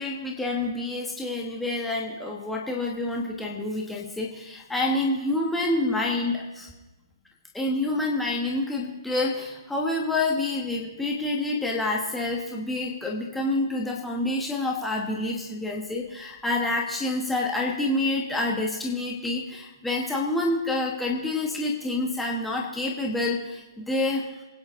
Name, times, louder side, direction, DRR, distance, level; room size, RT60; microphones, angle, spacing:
voice 1, 0.0-6.7 7.5-24.4, left 2 dB, 5° left, -2 dB, 1.3 m, -28 dB
25.0 x 9.6 x 3.7 m, 1.1 s
hypercardioid pair, 150°, 3 cm